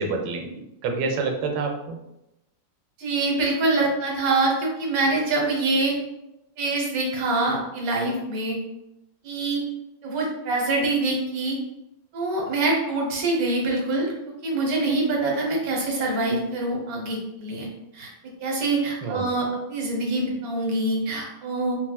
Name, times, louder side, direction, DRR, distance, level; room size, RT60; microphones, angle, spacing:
voice 1, 0.0-2.0 19.0-19.3, right 4 dB, 90° right, 3 dB, 1.4 m, -28 dB
voice 2, 3.0-5.9 6.6-8.6 9.2-9.6 10.0-11.6 12.1-14.1 14.4-17.7 17.9-18.1 18.4-21.8, right 2 dB, 65° right, -1 dB, 0.9 m, -25 dB
4.3 x 2.0 x 2.2 m, 0.89 s
omnidirectional pair, 2.3 m